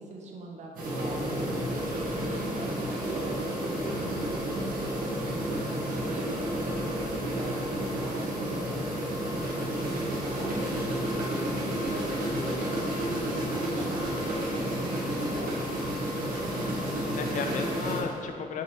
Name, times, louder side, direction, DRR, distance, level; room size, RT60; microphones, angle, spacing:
voice 1, 0.0-1.5 2.2-6.8 7.3-10.6 11.1-15.8 17.6-18.0, right 2 dB, 50° right, 0 dB, 0.9 m, -43 dB
sound 1, 0.8-18.0, right 1 dB, 65° right, 1.7 m, -31 dB
voice 2, 9.4-9.8 16.3-16.7 17.1-18.6, left 5 dB, 55° left, 5 dB, 0.6 m, -35 dB
6.3 x 4.9 x 4.2 m, 2.3 s
cardioid pair, 160°, 15 cm